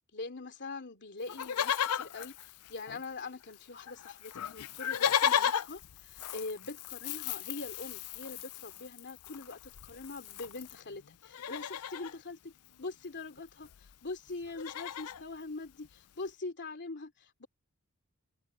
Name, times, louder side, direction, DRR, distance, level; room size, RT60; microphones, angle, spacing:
voice 1, 0.1-12.5 12.8-17.5, left 3 dB, 50° left, 3.1 m, -43 dB
Livestock farm animals working animals, 1.3-3.3 3.5-3.6 3.9-10.8 11.2-12.2 13.4-13.5 13.6-13.9 14.3-15.2 15.8-15.9, left 9 dB, 80° left, 0.5 m, -35 dB
head